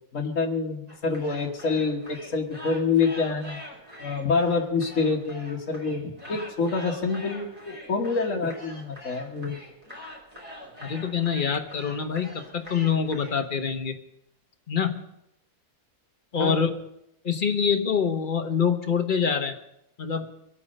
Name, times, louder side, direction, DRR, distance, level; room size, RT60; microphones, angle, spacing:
voice 1, 0.1-3.6 4.0-9.6 16.3-16.6, left 4 dB, 55° left, -2 dB, 1.7 m, -27 dB
sound 1, 0.9-13.5, left 1 dB, 25° right, 3.6 m, -44 dB
voice 2, 10.8-14.0 14.7-15.0 16.3-16.7 17.2-19.6 20.0-20.3, left 6 dB, 35° left, 6 dB, 1.2 m, -25 dB
25.0 x 8.4 x 5.4 m, 0.79 s
omnidirectional pair, 1.7 m